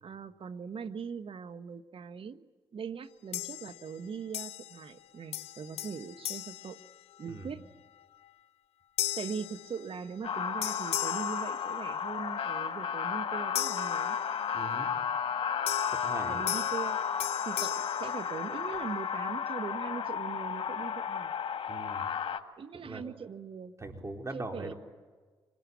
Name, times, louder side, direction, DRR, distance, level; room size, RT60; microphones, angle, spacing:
voice 1, 0.0-6.8 7.2-7.6 9.2-14.2 16.3-17.0 17.4-21.3 22.6-23.8 24.3-24.7, right 6 dB, 65° right, 10 dB, 1.4 m, -41 dB
sound 1, 3.3-4.0 4.3-5.0 5.3-7.5 8.0-8.3 9.0-10.3 10.6-12.2 13.5-14.7 15.7-18.9, left 13 dB, 85° left, 0.7 m, -38 dB
sound 2, 10.2-22.4, left 7 dB, 65° left, 1.8 m, -33 dB
voice 2, 14.5-14.9 15.9-16.5 21.7-22.1 22.8-23.0 23.8-24.7, right 2 dB, 30° right, 3 dB, 4.2 m, -41 dB
25.5 x 20.0 x 9.6 m, 1.4 s
supercardioid pair, 45°, 10 cm